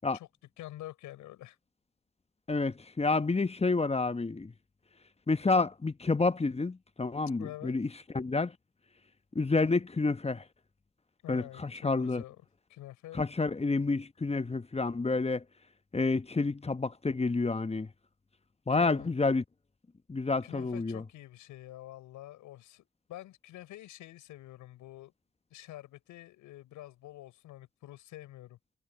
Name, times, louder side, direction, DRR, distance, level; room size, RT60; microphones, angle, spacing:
voice 1, 0.6-1.6 7.4-7.7 11.2-12.4 12.7-13.2 18.7-19.1 20.4-25.1 25.5-28.6, left 15 dB, 85° left, 6.0 m, -47 dB
voice 2, 2.5-4.5 5.3-7.9 8.1-8.5 9.3-10.4 11.3-12.2 13.1-15.4 15.9-17.9 18.7-19.4 20.1-21.0, left 3 dB, 20° left, 1.0 m, -29 dB
supercardioid pair, 50°, 30 cm